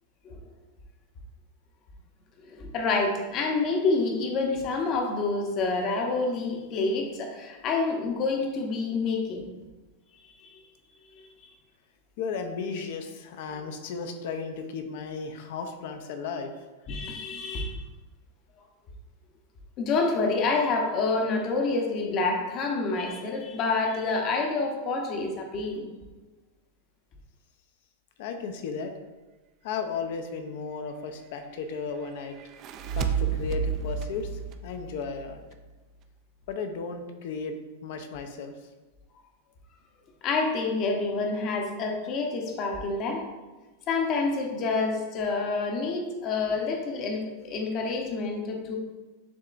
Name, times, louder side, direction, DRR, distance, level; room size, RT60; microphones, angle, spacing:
voice 1, 2.4-9.4 10.4-10.6 11.1-11.3 16.9-17.8 19.8-25.9 40.2-43.2 43.9-48.8, left 3 dB, 35° left, 2 dB, 0.8 m, -28 dB
voice 2, 12.2-16.5 28.2-28.9 29.6-32.4 33.0-34.3 34.6-35.4 36.5-37.6 37.8-38.6, left 5 dB, 60° left, 6 dB, 0.6 m, -34 dB
sound 1, 32.4-35.8, right 6 dB, 35° right, 0.3 m, -31 dB
7.1 x 2.8 x 2.5 m, 1.2 s
supercardioid pair, 145°, 0 cm